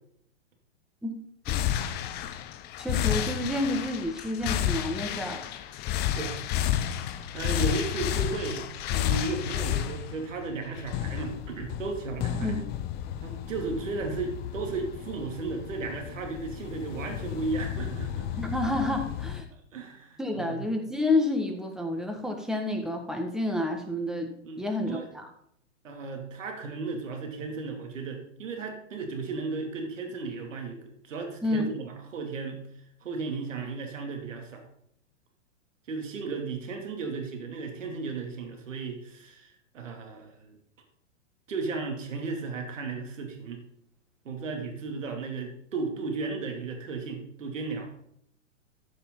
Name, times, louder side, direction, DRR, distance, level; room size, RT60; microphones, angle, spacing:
sound 1, 1.5-19.4, left 11 dB, 25° left, 0.7 m, -32 dB
voice 1, 2.8-5.4 12.3-12.6 18.4-19.4 20.2-24.3 24.6-25.3 31.4-31.7, left 2 dB, ahead, 3 dB, 1.6 m, -29 dB
voice 2, 6.1-6.7 7.3-12.6 13.2-18.4 19.7-20.6 24.4-25.1 25.8-30.8 31.0-32.6 33.0-34.7 35.9-40.6 41.5-43.6 44.2-47.9, right 4 dB, 80° right, 3 dB, 2.7 m, -35 dB
14.0 x 6.9 x 3.9 m, 0.71 s
hypercardioid pair, 130°, 38 cm